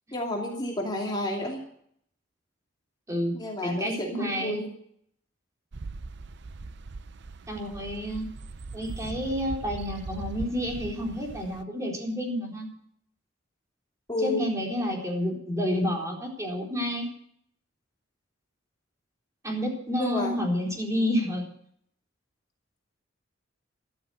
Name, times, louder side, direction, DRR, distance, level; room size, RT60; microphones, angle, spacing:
voice 1, 0.1-1.6 3.3-4.7 14.1-14.5 19.9-20.4, left 1 dB, 25° left, -1 dB, 2.5 m, -31 dB
voice 2, 3.6-4.6 7.5-8.2 8.7-12.7 14.2-17.1 19.4-21.4, equal, 15° right, -1 dB, 4.1 m, -29 dB
sound 1, 5.7-11.6, right 3 dB, 60° right, 0.7 m, -40 dB
13.5 x 13.0 x 6.3 m, 0.67 s
head